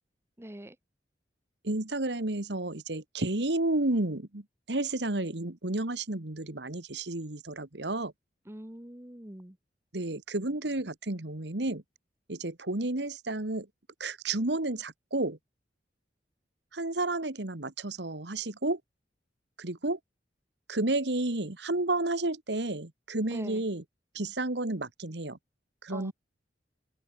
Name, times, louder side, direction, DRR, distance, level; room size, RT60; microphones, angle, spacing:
voice 1, 0.4-0.8 8.5-9.6 23.2-23.7 25.9-26.1, right 1 dB, 15° right, 1.4 m, -43 dB
voice 2, 1.6-8.1 9.9-11.8 12.3-13.7 14.0-15.4 16.7-18.8 19.6-20.0 20.7-23.8 24.1-25.4 25.8-26.1, right 2 dB, 75° right, 1.9 m, -31 dB
head